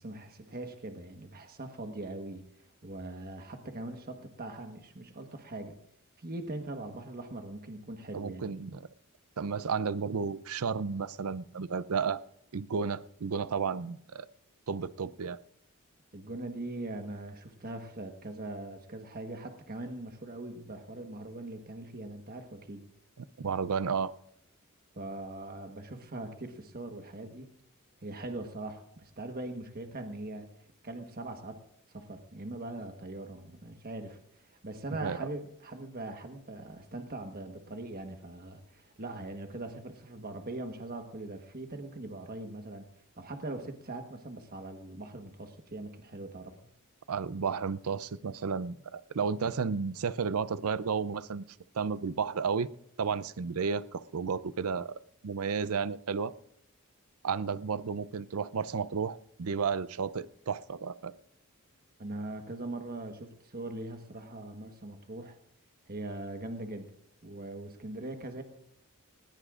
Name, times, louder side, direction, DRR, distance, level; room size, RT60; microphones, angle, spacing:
voice 1, 0.0-2.4 2.8-5.8 6.2-8.6 16.1-22.8 24.9-27.5 28.0-30.5 30.8-31.6 31.9-42.9 43.2-46.5 62.0-65.4 65.9-66.9 67.2-68.4, right 2 dB, 45° right, 5 dB, 1.3 m, -41 dB
voice 2, 8.1-8.8 9.4-12.2 12.5-14.3 14.7-15.4 23.2-24.1 35.0-35.3 47.1-51.4 51.7-52.7 53.0-56.3 57.2-61.1, right 5 dB, 75° right, 16 dB, 0.5 m, -32 dB
19.5 x 19.0 x 2.5 m, 0.74 s
head